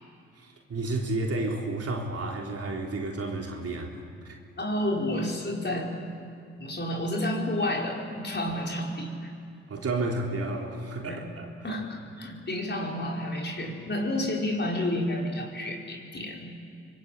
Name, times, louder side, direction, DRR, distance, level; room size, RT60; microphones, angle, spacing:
voice 1, 0.4-4.4 9.7-11.8, right 2 dB, 50° right, 0 dB, 3.7 m, -32 dB
voice 2, 4.6-5.9 6.6-9.3 11.1-11.2 11.6-16.5, left 1 dB, 35° left, -1 dB, 5.2 m, -30 dB
25.0 x 20.5 x 8.4 m, 2.4 s
hypercardioid pair, 45°, 31 cm